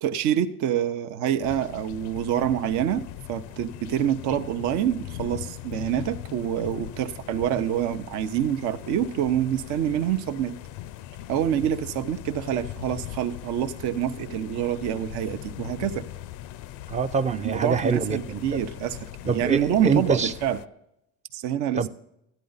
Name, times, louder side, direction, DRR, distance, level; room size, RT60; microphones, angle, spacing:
voice 1, 0.0-3.0 3.3-10.5 11.3-16.0 17.4-20.6 21.3-21.9, right 10 dB, 70° right, 0.8 m, -26 dB
sound 1, 1.4-20.7, left 13 dB, 75° left, 0.5 m, -40 dB
voice 2, 16.9-18.6 19.3-20.3 21.8-21.9, right 5 dB, 25° right, 0.4 m, -25 dB
13.0 x 10.0 x 3.9 m
cardioid pair, 110°, 30 cm